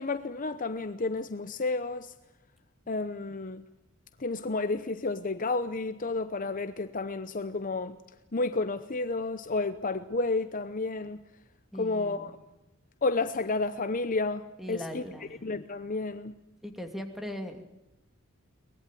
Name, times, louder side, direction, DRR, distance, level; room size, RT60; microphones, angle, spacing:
voice 1, 0.0-2.1 2.9-3.6 4.2-8.0 8.3-11.2 11.8-12.3 13.0-15.0 15.4-16.4, left 3 dB, 40° left, 0.8 m, -31 dB
voice 2, 11.7-12.3 14.6-15.4 16.6-17.6, equal, ahead, 2.6 m, -39 dB
23.0 x 20.0 x 9.2 m
head